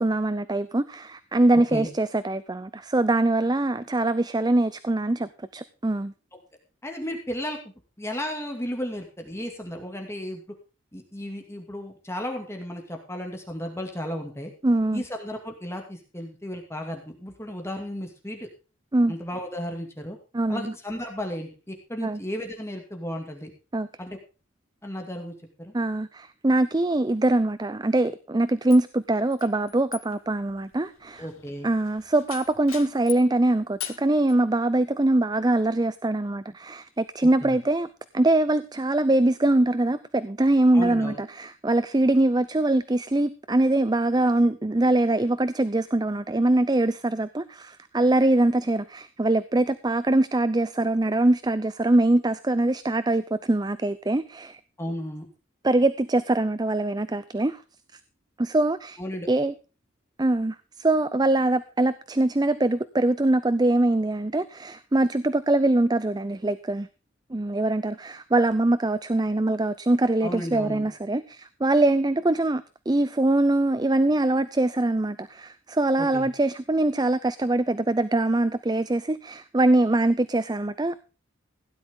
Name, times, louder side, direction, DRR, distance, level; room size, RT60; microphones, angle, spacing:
voice 1, 0.0-6.1 14.6-15.0 18.9-19.1 20.3-20.6 22.0-22.2 23.7-23.9 25.7-31.3 31.6-37.9 38.1-54.6 55.6-57.6 58.4-59.0 59.3-59.5 60.2-66.9 67.3-81.0, right 2 dB, 20° right, 14 dB, 0.5 m, -23 dB
voice 2, 6.8-7.6 8.0-10.4 10.9-14.5 14.9-18.5 19.1-20.2 20.5-23.5 24.0-24.2 24.8-25.7 31.2-31.7 37.4-37.6 40.7-41.2 54.8-55.3 59.0-59.3 70.2-70.9 76.0-76.3, equal, 15° left, 3 dB, 2.3 m, -34 dB
sound 1, 28.7-33.3 33.8-34.4, left 11 dB, 85° left, 1.7 m, -41 dB
16.5 x 10.5 x 3.7 m, 0.33 s
head